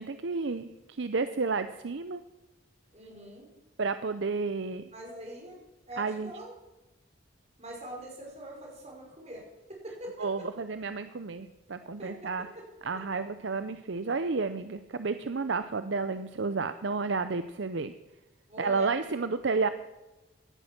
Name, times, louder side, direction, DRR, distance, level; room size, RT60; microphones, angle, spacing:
voice 1, 0.0-2.2 3.8-4.8 6.0-6.3 10.2-12.5 12.8-17.9 18.6-19.7, right 4 dB, 60° right, 11 dB, 0.6 m, -31 dB
voice 2, 2.9-3.5 4.9-5.6 5.9-6.5 7.6-9.4 9.8-10.3 12.0-12.3 12.6-12.7 12.9-13.0 18.5-19.3, right 1 dB, 30° right, -1 dB, 5.2 m, -43 dB
17.0 x 11.0 x 6.0 m, 1.1 s
head